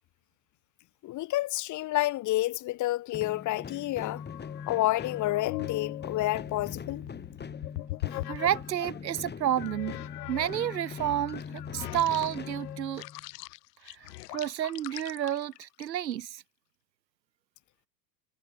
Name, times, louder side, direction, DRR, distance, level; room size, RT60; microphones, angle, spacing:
voice 1, 1.0-4.2 4.7-7.1, left 16 dB, 35° left, 1.2 m, -29 dB
sound 1, 3.1-13.3, left 6 dB, 20° left, 5.2 m, -42 dB
sound 2, 4.1-9.0 9.6-16.2, left 19 dB, 70° left, 2.5 m, -41 dB
voice 2, 8.3-10.0 10.3-13.0 13.8-14.1 14.3-16.4, right 11 dB, 90° right, 3.2 m, -30 dB
hypercardioid pair, 110°, 49 cm